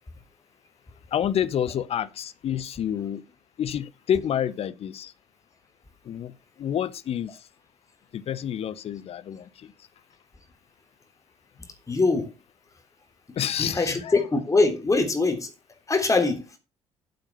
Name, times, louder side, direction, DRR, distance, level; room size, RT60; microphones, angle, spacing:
voice 1, 1.1-3.2 3.6-5.1 6.0-7.5 8.1-9.7 13.4-14.1, left 9 dB, 45° left, 0.9 m, -29 dB
voice 2, 11.9-12.3 13.6-15.5 15.9-16.6, left 3 dB, 20° left, 3.6 m, -23 dB
8.6 x 8.0 x 5.6 m
figure-of-eight pair, 45°, 14 cm